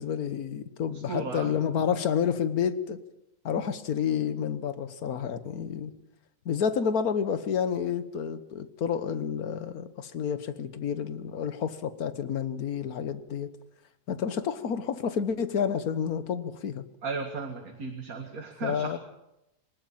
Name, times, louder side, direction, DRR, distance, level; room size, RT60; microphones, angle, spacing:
voice 1, 0.0-3.0 3.4-5.9 6.4-13.5 14.1-16.8 18.6-19.0, left 7 dB, 60° left, 12 dB, 1.5 m, -29 dB
voice 2, 0.9-1.5 17.0-19.0, right 4 dB, 55° right, 3 dB, 2.3 m, -35 dB
20.5 x 19.5 x 7.3 m, 0.89 s
omnidirectional pair, 1.9 m